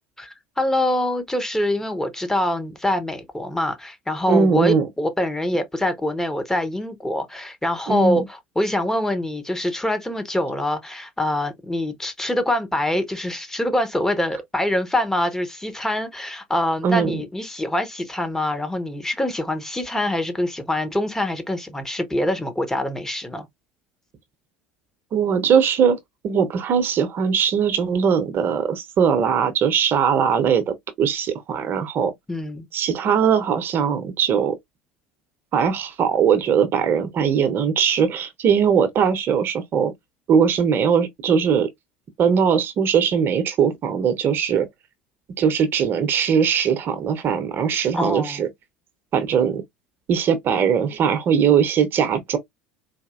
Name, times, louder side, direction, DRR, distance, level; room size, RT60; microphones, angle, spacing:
voice 1, 0.2-8.2 8.6-23.5 32.3-32.7 47.9-48.5, left 1 dB, 10° left, 0.9 m, -24 dB
voice 2, 4.3-4.9 7.9-8.2 16.8-17.2 25.1-26.0 26.2-32.1 32.7-34.6 35.5-39.9 40.3-41.7 42.2-44.7 45.4-48.5 49.1-49.6 50.1-52.4, right 7 dB, 45° right, 0.8 m, -20 dB
4.2 x 2.6 x 2.4 m
figure-of-eight pair, 70°, 5 cm